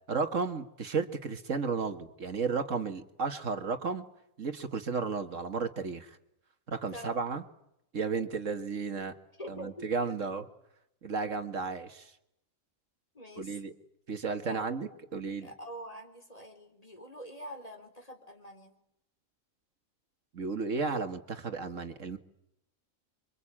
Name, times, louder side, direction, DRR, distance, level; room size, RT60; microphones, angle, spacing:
voice 1, 0.1-4.1 4.4-6.1 6.7-7.4 7.9-9.1 9.5-10.4 11.0-12.1 13.4-13.7 14.1-15.5 20.3-22.2, right 4 dB, 70° right, 7 dB, 2.1 m, -33 dB
voice 2, 9.4-10.3 13.1-13.6 14.4-14.8 15.4-18.7, equal, 25° left, 5 dB, 4.2 m, -45 dB
28.0 x 24.5 x 8.7 m, 0.80 s
omnidirectional pair, 1.4 m